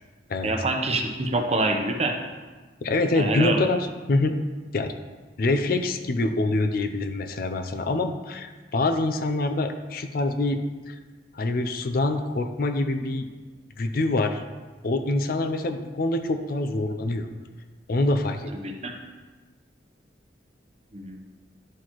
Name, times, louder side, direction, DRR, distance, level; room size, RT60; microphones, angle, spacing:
voice 1, 0.4-2.2 3.1-3.6 18.6-18.9 20.9-21.2, right 2 dB, 35° right, 3 dB, 0.7 m, -26 dB
voice 2, 2.8-4.4 4.7-4.9 5.4-10.6 10.9-11.0 11.3-13.3 13.8-14.4 14.8-17.3 17.9-18.5, left 2 dB, 55° left, 7 dB, 0.5 m, -25 dB
11.0 x 4.3 x 3.0 m, 1.3 s
head